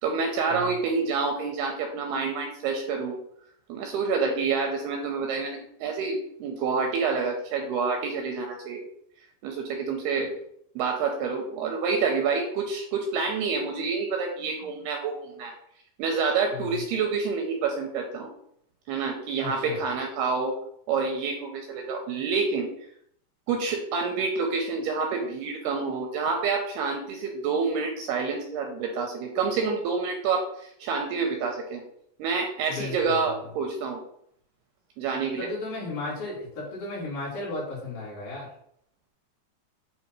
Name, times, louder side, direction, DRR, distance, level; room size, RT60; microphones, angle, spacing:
voice 1, 0.0-3.2 3.7-8.8 9.4-10.3 10.8-15.5 16.0-18.3 18.9-20.5 20.9-22.7 23.5-31.8 32.2-34.0 35.0-35.5, right 5 dB, 80° right, 3 dB, 2.4 m, -28 dB
voice 2, 16.5-16.8 19.4-19.8 32.7-33.3 35.4-38.5, left 3 dB, 55° left, -5 dB, 3.6 m, -35 dB
8.4 x 3.0 x 4.6 m, 0.68 s
omnidirectional pair, 5.1 m